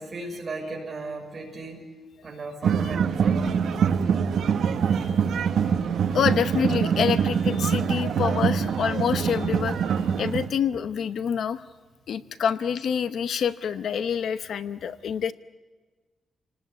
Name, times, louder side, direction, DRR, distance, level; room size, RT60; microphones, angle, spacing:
voice 1, 0.0-1.8 2.2-3.5, right 3 dB, 35° right, 2 dB, 6.1 m, -36 dB
sound 1, 2.6-10.5, right 7 dB, 70° right, 1.2 m, -24 dB
sound 2, 3.2-8.3, right 1 dB, 10° right, 1.6 m, -45 dB
voice 2, 6.1-11.6 12.1-15.3, left 7 dB, 65° left, 12 dB, 0.8 m, -27 dB
30.0 x 19.0 x 8.4 m, 1.4 s
wide cardioid pair, 170°, 0 cm